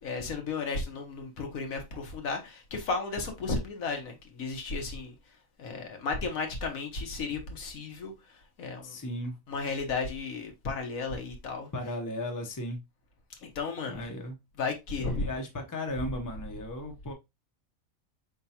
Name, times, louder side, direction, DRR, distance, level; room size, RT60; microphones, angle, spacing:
voice 1, 0.0-5.1 5.6-8.1 8.6-9.0 9.5-11.7 13.4-14.1 14.6-15.3 15.9-16.0, left 4 dB, 80° left, 1.5 m, -34 dB
voice 2, 8.8-9.3 11.7-12.8 13.9-14.4 15.0-17.1, left 1 dB, 20° left, 0.7 m, -36 dB
4.5 x 3.6 x 2.8 m
omnidirectional pair, 1.4 m